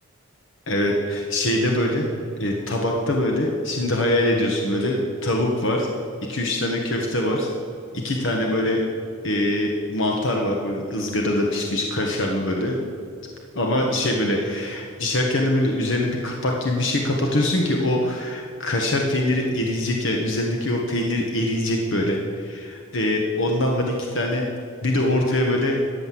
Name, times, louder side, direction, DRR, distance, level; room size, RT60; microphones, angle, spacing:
voice 1, 0.7-2.1 2.4-5.9 6.3-7.5 7.9-8.8 9.2-12.8 13.5-24.4 24.8-25.8, left 1 dB, 55° left, 0 dB, 1.5 m, -23 dB
14.5 x 9.0 x 7.7 m, 2.4 s
head